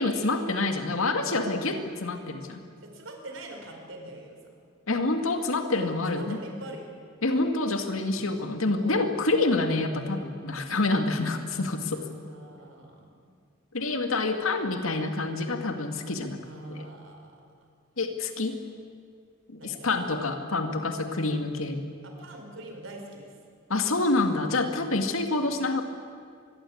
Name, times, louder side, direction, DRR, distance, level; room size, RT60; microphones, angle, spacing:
voice 1, 0.0-2.6 4.9-6.4 7.2-12.0 13.7-16.4 16.7-16.9 18.0-18.6 19.5-21.8 23.7-25.8, left 2 dB, 90° left, 5 dB, 2.2 m, -27 dB
voice 2, 2.8-4.5 5.7-7.0 8.7-9.3 11.7-13.2 16.4-17.4 19.6-19.9 22.0-23.3, right 1 dB, 70° right, 3 dB, 4.9 m, -43 dB
25.0 x 21.5 x 8.7 m, 2.2 s
head